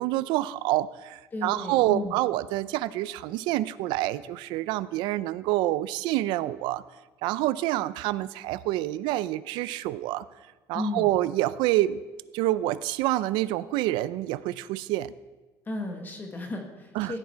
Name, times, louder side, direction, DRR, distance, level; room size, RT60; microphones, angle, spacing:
voice 1, 0.0-6.8 7.2-10.2 10.7-12.0 12.3-15.1 16.9-17.1, right 15 dB, 85° right, 16 dB, 0.4 m, -27 dB
voice 2, 1.3-2.2 10.7-11.1 15.7-17.2, left 2 dB, 25° left, 4 dB, 1.5 m, -34 dB
15.5 x 9.7 x 4.6 m, 1.2 s
cardioid pair, 130°, 8 cm